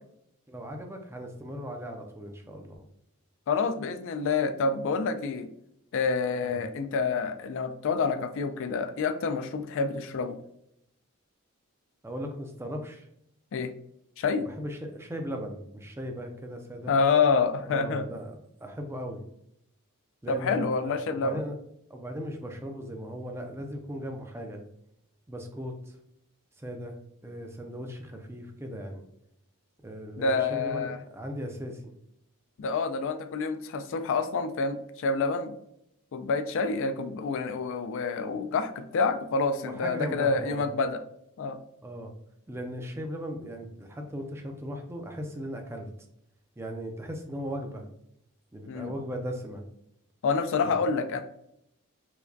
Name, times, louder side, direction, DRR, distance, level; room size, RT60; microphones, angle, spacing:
voice 1, 0.5-2.8 6.4-6.6 12.0-13.1 14.4-16.9 17.6-19.2 20.2-21.5 21.9-24.6 25.3-26.0 26.6-27.0 27.2-29.0 29.8-31.9 39.6-40.7 41.8-42.1 42.5-45.9 46.6-47.8 48.5-49.6 50.6-50.7, equal, 10° right, 3 dB, 0.4 m, -37 dB
voice 2, 3.5-5.5 5.9-10.4 13.5-13.7 14.2-14.4 16.9-18.0 20.3-21.4 30.2-31.0 32.6-35.5 36.1-41.0 41.4-41.6 48.7-48.9 50.2-51.2, left 4 dB, 60° left, 8 dB, 0.4 m, -27 dB
4.6 x 2.2 x 2.6 m, 0.76 s
head